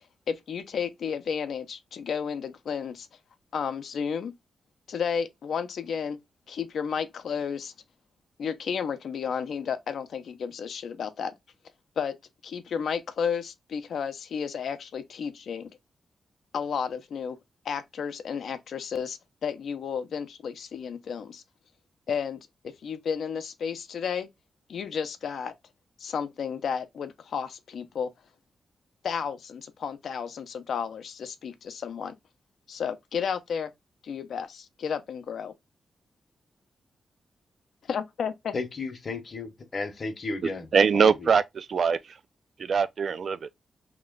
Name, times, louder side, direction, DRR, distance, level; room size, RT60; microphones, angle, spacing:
voice 1, 0.0-3.1 3.5-4.3 4.9-6.2 6.5-7.7 8.4-11.3 12.0-12.2 12.4-15.7 16.5-17.4 17.6-21.4 22.1-24.3 24.7-25.5 26.0-28.1 29.0-32.1 32.7-33.7 34.0-35.5 37.9-38.5, left 7 dB, 75° left, 0.6 m, -32 dB
voice 2, 38.5-40.7 40.9-41.3, left 3 dB, 40° left, 0.9 m, -34 dB
voice 3, 40.7-42.2 42.6-43.5, right 6 dB, 55° right, 0.3 m, -23 dB
3.1 x 3.0 x 3.6 m
wide cardioid pair, 150°, 0 cm